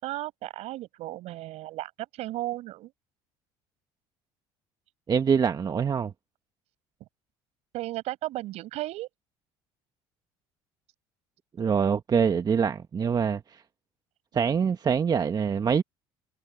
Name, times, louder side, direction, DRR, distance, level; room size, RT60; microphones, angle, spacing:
voice 1, 0.0-2.9 7.7-9.1, right 16 dB, 70° right, 6.5 m, -35 dB
voice 2, 5.1-6.1 11.6-13.6 14.3-15.8, right 6 dB, 35° right, 1.3 m, -24 dB
supercardioid pair, 80°, 12 cm